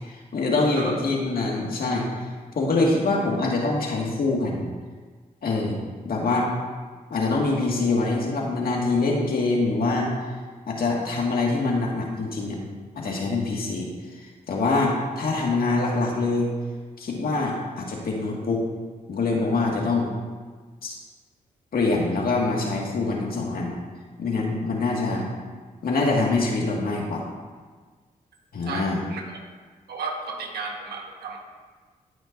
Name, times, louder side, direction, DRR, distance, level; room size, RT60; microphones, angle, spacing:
voice 1, 0.0-2.1 2.5-4.7 5.4-5.8 6.0-6.5 7.1-10.1 10.7-12.6 13.0-13.9 14.2-16.5 17.0-18.6 19.1-20.1 20.8-21.0 21.7-23.7 24.2-25.3 25.8-27.2 28.5-29.0, left 3 dB, 70° left, -2 dB, 1.9 m, -24 dB
voice 2, 28.7-29.2 29.9-31.4, right 4 dB, 85° right, 1 dB, 1.4 m, -33 dB
14.5 x 6.1 x 2.6 m, 1.5 s
cardioid pair, 50°, 16 cm